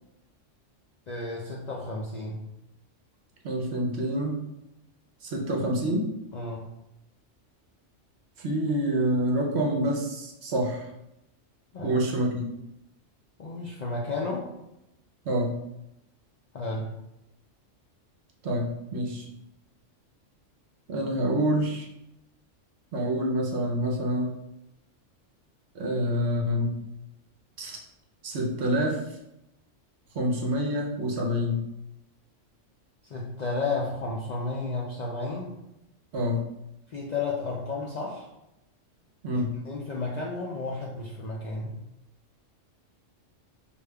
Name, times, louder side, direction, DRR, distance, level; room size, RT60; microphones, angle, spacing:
voice 1, 1.1-2.4 6.3-6.7 11.7-12.0 13.4-14.5 16.5-16.9 33.1-35.6 36.9-38.3 39.3-41.8, left 3 dB, 80° left, -3 dB, 0.3 m, -32 dB
voice 2, 3.4-4.4 5.2-6.1 8.4-10.9 11.8-12.5 15.2-15.6 18.4-19.3 20.9-21.9 22.9-24.4 25.7-26.8 27.6-27.8 28.2-29.2 30.1-31.6 36.1-36.4 39.2-39.5, equal, 65° right, -1 dB, 0.8 m, -27 dB
4.9 x 2.5 x 2.2 m, 0.88 s
omnidirectional pair, 1.3 m